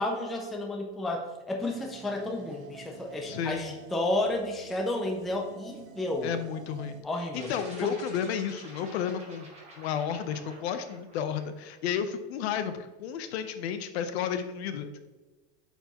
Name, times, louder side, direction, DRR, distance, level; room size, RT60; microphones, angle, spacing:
voice 1, 0.0-6.3 7.0-7.5 7.8-7.9, left 2 dB, ahead, 1 dB, 0.3 m, -31 dB
sound 1, 1.6-7.0, right 6 dB, 85° right, 1.4 m, -48 dB
voice 2, 3.2-3.7 6.2-7.0 7.3-9.5 9.8-14.9, left 8 dB, 75° left, 9 dB, 0.8 m, -32 dB
sound 2, 7.3-12.0, right 2 dB, 20° right, 1.6 m, -50 dB
9.0 x 4.5 x 3.0 m, 1.2 s
supercardioid pair, 160°, 32 cm